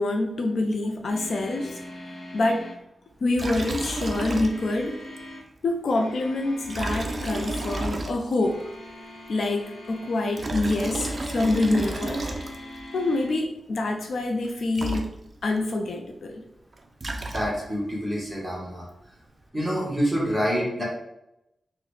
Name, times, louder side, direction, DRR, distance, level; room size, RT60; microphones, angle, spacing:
voice 1, 0.0-1.8 2.3-2.7 3.2-5.0 5.6-8.6 9.3-12.3 12.9-15.1 15.4-16.4, left 2 dB, 65° left, 3 dB, 0.3 m, -26 dB
sound 1, 1.1-2.8 3.4-5.5 5.8-8.1 8.4-10.5 10.9-13.3, left 1 dB, 85° left, 0.8 m, -42 dB
Liquid, 3.3-4.9 5.2-5.3 6.6-8.5 10.2-12.8 14.4-14.5 14.7-15.6 16.7-17.8, right 2 dB, 35° right, 0.3 m, -32 dB
voice 2, 17.3-18.8 19.5-20.8, equal, 5° right, -5 dB, 1.1 m, -27 dB
3.8 x 2.1 x 3.1 m, 0.85 s
wide cardioid pair, 155°, 0 cm